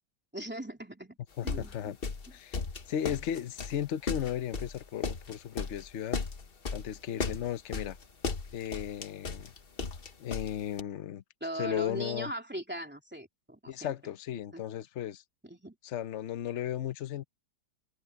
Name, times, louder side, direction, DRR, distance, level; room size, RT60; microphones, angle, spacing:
voice 1, 0.3-1.2 1.4-1.9 11.4-13.9 14.5-14.6 15.4-15.7, right 1 dB, 5° right, 3.1 m, -39 dB
voice 2, 1.4-2.0 2.3-2.6 2.9-6.2 6.7-8.0 8.5-9.5 10.2-11.2 11.5-12.3 13.7-15.2 15.8-17.2, left 10 dB, 70° left, 0.7 m, -35 dB
sound 1, 1.5-10.8, left 4 dB, 35° left, 1.0 m, -36 dB
omnidirectional pair, 2.2 m